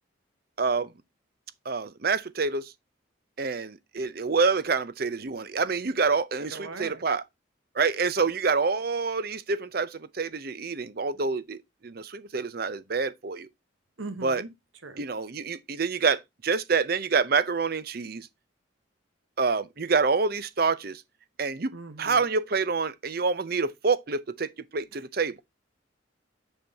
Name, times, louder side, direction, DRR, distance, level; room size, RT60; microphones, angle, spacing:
voice 1, 0.6-0.9 1.7-2.7 3.4-7.2 7.8-13.5 14.2-14.4 15.0-18.3 19.4-21.0 21.4-21.7 22.0-25.3, right 4 dB, 50° right, 0.6 m, -27 dB
voice 2, 6.5-7.0 14.0-14.5 14.8-15.0 21.7-22.2, right 3 dB, 85° right, 1.2 m, -40 dB
6.6 x 6.2 x 2.7 m
head